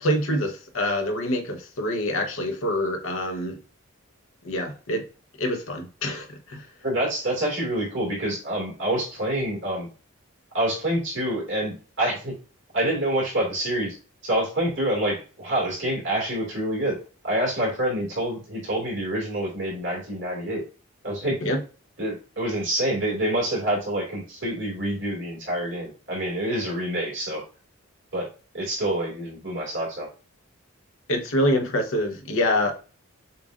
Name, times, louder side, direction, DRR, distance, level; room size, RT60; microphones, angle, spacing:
voice 1, 0.0-3.6 4.4-5.1 5.4-6.6 21.4-21.6 31.1-32.7, left 1 dB, 70° left, 0.9 m, -25 dB
voice 2, 6.8-9.9 10.5-12.3 12.7-14.0 14.2-17.0 17.2-20.6 21.0-21.4 22.0-27.4 28.1-28.3 28.5-30.1, right 1 dB, 55° right, 2.1 m, -27 dB
6.7 x 2.5 x 2.4 m
head